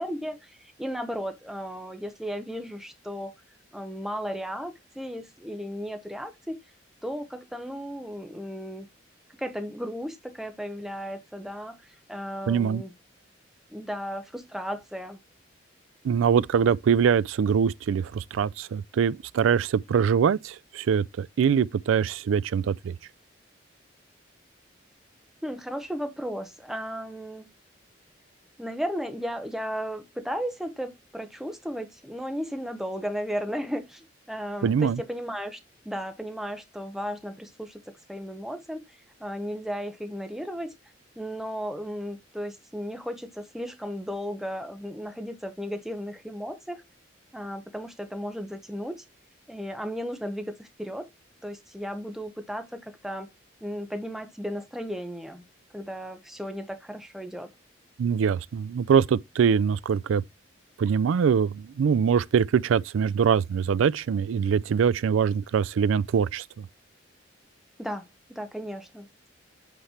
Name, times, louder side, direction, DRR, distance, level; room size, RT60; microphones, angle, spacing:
voice 1, 0.0-3.3 3.7-6.6 7.0-8.9 9.4-12.9 13.7-15.2 25.4-27.5 28.6-35.6 35.8-38.8 39.2-40.7 41.2-46.8 47.3-49.0 49.5-51.1 51.4-53.3 53.6-55.4 55.7-57.5 67.8-69.1, equal, ahead, 0.9 m, -35 dB
voice 2, 12.5-12.8 16.0-23.0 34.6-35.0 58.0-60.2 60.8-66.7, right 7 dB, 85° right, 0.3 m, -23 dB
7.9 x 3.3 x 4.3 m
head